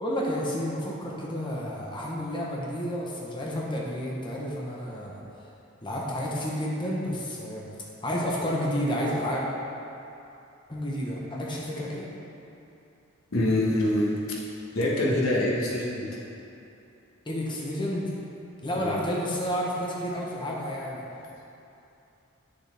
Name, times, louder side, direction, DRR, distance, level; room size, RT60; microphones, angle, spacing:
voice 1, 0.0-5.2 5.8-7.7 8.0-9.4 10.7-12.1 17.3-18.1 18.6-21.0, equal, 25° left, -4 dB, 1.0 m, -30 dB
voice 2, 13.3-14.4 14.7-16.1 18.8-19.0, left 1 dB, 85° left, -4 dB, 1.4 m, -25 dB
9.8 x 6.7 x 3.5 m, 2.7 s
head